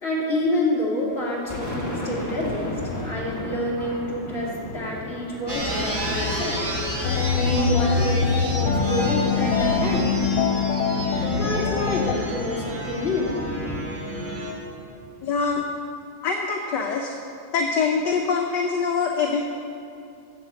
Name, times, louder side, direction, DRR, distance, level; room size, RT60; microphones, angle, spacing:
voice 1, 0.0-6.6 7.4-10.1 11.0-13.3, left 1 dB, 30° left, -5 dB, 2.7 m, -28 dB
Thunder, 1.1-15.7, left 2 dB, 10° left, 1.2 m, -35 dB
sound 1, 5.5-14.5, equal, 30° right, 2.2 m, -31 dB
sound 2, 7.0-12.1, left 5 dB, 90° left, 1.7 m, -23 dB
voice 2, 15.2-15.7 16.2-17.1 17.5-19.4, left 5 dB, 65° left, 2 dB, 1.3 m, -24 dB
12.5 x 6.8 x 8.1 m, 2.5 s
omnidirectional pair, 2.3 m